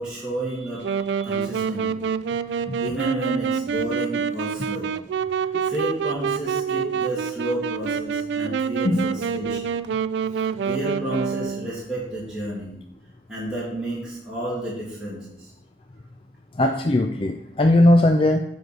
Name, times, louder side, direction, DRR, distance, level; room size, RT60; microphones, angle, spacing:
voice 1, 0.0-2.1 2.5-4.9 5.4-9.8 10.2-12.7 13.3-15.5, right 1 dB, 5° right, -10 dB, 2.4 m, -31 dB
Wind instrument woodwind instrument, 0.8-11.7, right 7 dB, 85° right, 0.3 m, -27 dB
voice 2, 16.6-18.4, left 1 dB, 30° left, 5 dB, 0.4 m, -18 dB
7.9 x 4.7 x 6.1 m, 0.78 s
head